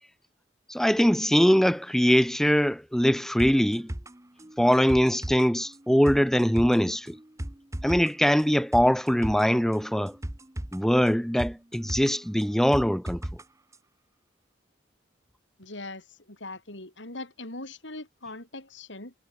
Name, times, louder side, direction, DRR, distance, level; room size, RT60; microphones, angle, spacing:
voice 1, 0.7-3.9 4.6-7.2 7.8-10.2 10.7-13.2, equal, ahead, 1.0 m, -22 dB
sound 1, 3.4-13.4 13.7-13.8, right 1 dB, 15° right, 1.1 m, -38 dB
voice 2, 15.6-19.1, left 2 dB, 75° left, 5.7 m, -41 dB
head